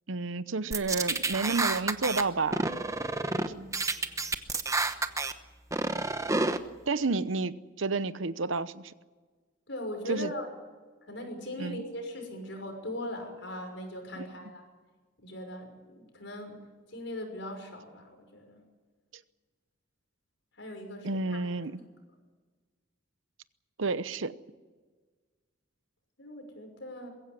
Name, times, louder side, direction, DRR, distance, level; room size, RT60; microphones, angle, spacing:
voice 1, 0.1-2.7 6.9-8.9 10.1-10.3 11.6-11.8 21.0-21.8 23.8-24.3, right 3 dB, 75° right, 0.9 m, -30 dB
sound 1, 0.7-2.2 2.5-3.5 3.7-5.3 5.7-6.6, right 3 dB, 15° right, 1.0 m, -29 dB
voice 2, 3.3-3.7 9.7-10.5 11.1-14.6 15.2-16.6 16.9-18.6 20.6-21.4 21.8-21.9 26.2-27.1, left 1 dB, 65° left, 6.0 m, -40 dB
22.0 x 16.0 x 9.7 m
head